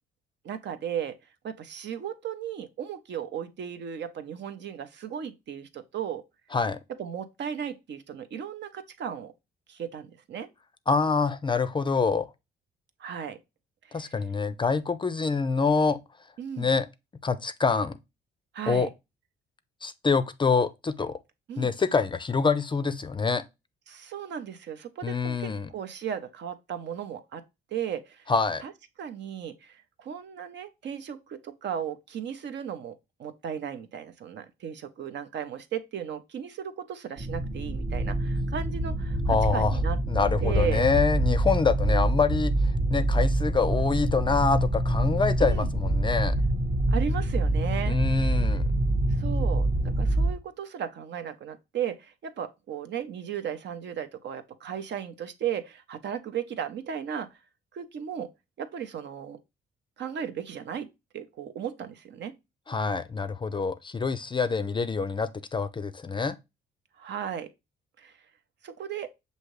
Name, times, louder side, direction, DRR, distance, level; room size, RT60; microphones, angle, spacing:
voice 1, 0.4-1.2 1.4-6.3 6.9-9.3 9.7-10.5 13.0-13.4 13.8-14.1 16.4-16.7 18.5-18.9 21.5-21.7 23.9-27.4 27.7-28.3 28.6-28.7 29.0-32.9 33.2-40.0 40.4-40.9 45.4-45.7 46.9-48.0 48.3-48.4 49.1-57.4 57.7-58.3 58.6-59.4 60.0-62.3 67.0-67.5 68.0-68.2 68.6-69.1, right 8 dB, 60° right, 0.7 m, -36 dB
voice 2, 10.9-12.3 13.9-16.0 16.6-16.9 17.2-18.0 18.7-18.9 19.8-21.2 21.6-23.4 25.0-25.7 28.3-28.6 39.3-39.8 40.1-42.5 42.9-46.3 47.9-48.7 62.7-66.4, left 4 dB, 25° left, 0.4 m, -26 dB
sound 1, 37.2-50.3, right 1 dB, 25° right, 0.7 m, -26 dB
6.3 x 2.7 x 3.1 m
cardioid pair, 90°, 20 cm